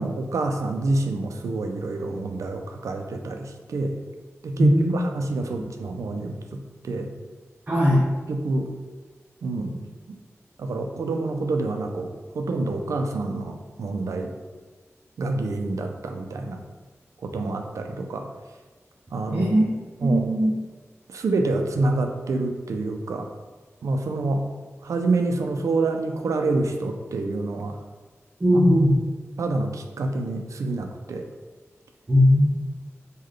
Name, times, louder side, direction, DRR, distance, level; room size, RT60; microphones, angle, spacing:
voice 1, 0.0-4.0 4.4-7.1 8.3-8.7 9.4-10.2 10.6-14.3 15.2-16.6 17.2-18.3 19.1-19.5 20.0-20.3 21.1-23.3 23.8-24.5 24.8-27.8 28.5-28.6 29.4-31.3, right 2 dB, 85° right, 5 dB, 0.3 m, -27 dB
voice 2, 4.6-4.9 7.7-8.1 19.3-19.6 20.0-20.5 28.4-29.0 32.1-32.6, equal, 30° right, -4 dB, 0.5 m, -18 dB
3.2 x 2.2 x 3.7 m, 1.3 s
wide cardioid pair, 80°, 5 cm